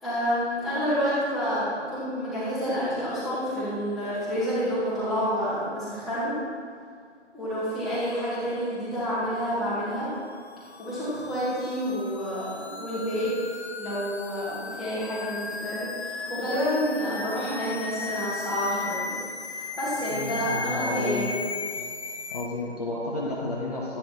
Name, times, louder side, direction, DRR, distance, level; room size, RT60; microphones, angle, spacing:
voice 1, 0.0-6.3 7.3-10.1 10.6-19.2 19.5-21.4, equal, ahead, -14 dB, 2.3 m, -29 dB
sound 1, 10.2-22.5, left 4 dB, 65° left, 0.9 m, -36 dB
voice 2, 20.1-21.3 22.3-24.0, left 2 dB, 35° left, -4 dB, 1.4 m, -31 dB
12.5 x 10.5 x 4.5 m, 2.2 s
figure-of-eight pair, 150°, 35 cm